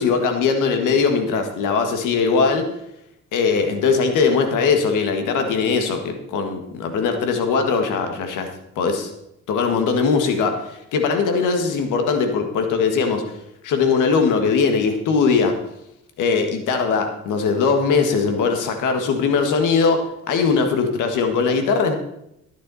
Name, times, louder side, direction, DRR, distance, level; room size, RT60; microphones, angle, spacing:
voice 1, 0.0-2.7 3.3-8.5 8.8-9.1 9.5-13.2 13.6-15.5 16.2-20.0 20.3-22.0, left 5 dB, 85° left, 5 dB, 1.7 m, -20 dB
12.0 x 10.0 x 4.1 m, 0.81 s
cardioid pair, 90°, 30 cm